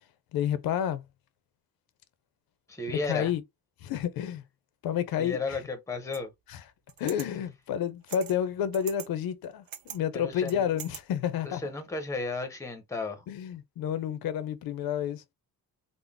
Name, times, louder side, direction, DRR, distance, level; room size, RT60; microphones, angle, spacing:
voice 1, 0.3-1.0 2.9-3.4 3.8-4.4 4.8-5.6 6.5-6.6 7.0-11.6 13.3-15.2, left 9 dB, 90° left, 0.6 m, -30 dB
voice 2, 2.7-3.3 5.2-6.3 10.1-10.7 11.4-13.2, left 3 dB, 10° left, 0.6 m, -34 dB
sound 1, 6.1-6.2 6.9-7.3 8.1-8.4 8.7-9.1 9.4-10.0 10.5-11.0, right 10 dB, 75° right, 0.6 m, -42 dB
3.7 x 2.0 x 3.3 m
wide cardioid pair, 175°, 35 cm